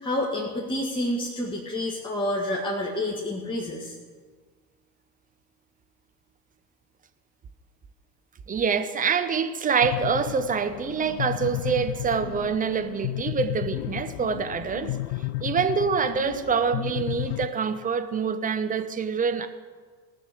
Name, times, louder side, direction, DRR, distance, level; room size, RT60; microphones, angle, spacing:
voice 1, 0.0-3.9, left 1 dB, 10° left, -3 dB, 1.8 m, -28 dB
voice 2, 8.5-14.9 15.4-19.5, right 6 dB, 15° right, 8 dB, 0.8 m, -26 dB
sound 1, 9.8-17.5, left 17 dB, 50° left, 0.7 m, -33 dB
17.5 x 6.2 x 7.9 m, 1.5 s
figure-of-eight pair, 80°, 49 cm